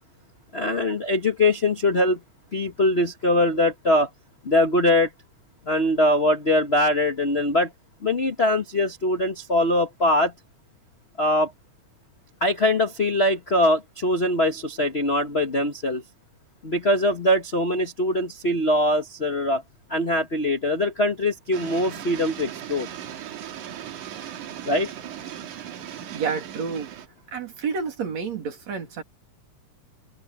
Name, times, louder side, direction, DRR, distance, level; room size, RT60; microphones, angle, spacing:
voice 1, 0.5-2.2 2.5-4.1 4.4-5.1 5.7-7.7 8.0-10.3 11.2-11.5 12.4-16.0 16.6-19.6 19.9-22.9 24.7-24.9, left 1 dB, 35° left, 1.0 m, -22 dB
sound 1, 21.5-27.1, right 10 dB, 85° right, 3.1 m, -38 dB
voice 2, 26.1-26.9 27.3-29.0, right 5 dB, 60° right, 4.0 m, -29 dB
open air
omnidirectional pair, 3.5 m